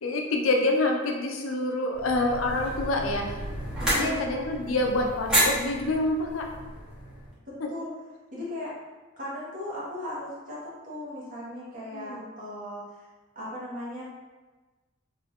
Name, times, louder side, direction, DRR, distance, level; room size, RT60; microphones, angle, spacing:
voice 1, 0.0-3.3 3.9-6.5 7.6-7.7 11.9-12.3, left 2 dB, 80° left, 1 dB, 0.5 m, -27 dB
sound 1, 1.9-7.3, equal, 5° right, 0.9 m, -30 dB
voice 2, 3.8-4.3 7.7-7.9 8.3-8.7 9.2-12.8 13.3-14.0, left 1 dB, 40° right, -8 dB, 1.2 m, -37 dB
2.9 x 2.5 x 3.4 m, 1.2 s
head